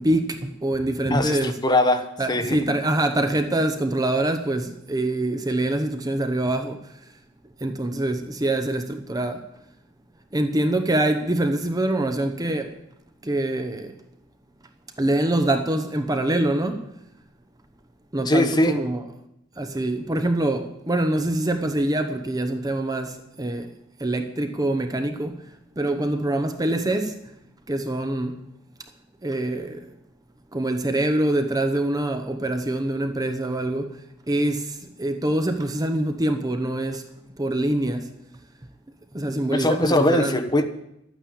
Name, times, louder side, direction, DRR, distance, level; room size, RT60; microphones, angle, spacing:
voice 1, 0.0-1.6 2.2-7.0 7.6-9.5 10.3-12.8 13.2-13.9 15.0-16.9 18.1-19.0 19.6-23.7 24.0-25.4 25.8-27.2 27.7-28.4 29.2-30.0 30.5-34.0 34.3-37.1 37.4-38.1 39.1-40.4, right 1 dB, 20° right, 0.9 m, -25 dB
voice 2, 1.1-2.6 18.3-18.8 39.5-40.7, left 1 dB, 20° left, 1.2 m, -21 dB
12.5 x 9.2 x 8.7 m
head